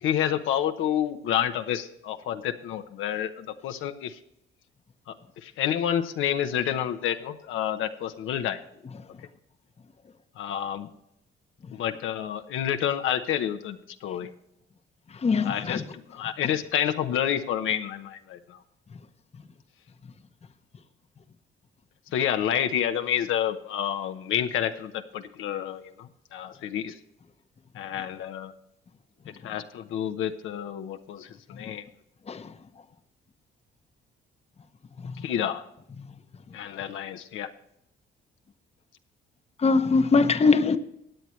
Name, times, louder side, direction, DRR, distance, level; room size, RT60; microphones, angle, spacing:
voice 1, 0.0-4.2 5.1-5.2 5.4-8.6 10.4-10.9 11.7-14.3 15.4-18.6 22.1-27.0 27.7-28.5 29.4-31.8 35.2-35.6 36.5-37.5, left 10 dB, 85° left, 0.9 m, -29 dB
voice 2, 15.2-15.8 32.3-32.4 39.6-40.8, left 4 dB, 30° left, 0.9 m, -21 dB
16.5 x 9.1 x 3.2 m
cardioid pair, 90°, 20 cm